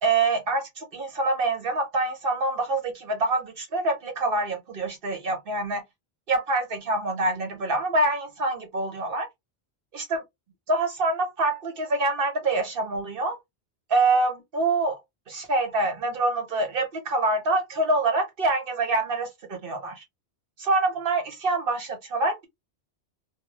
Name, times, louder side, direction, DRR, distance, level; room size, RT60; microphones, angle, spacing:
voice 1, 0.0-5.8 6.3-9.3 9.9-10.2 10.7-13.4 13.9-15.0 15.3-20.0 20.6-22.5, right 2 dB, 60° right, 0.9 m, -25 dB
2.6 x 2.3 x 3.1 m
omnidirectional pair, 1.1 m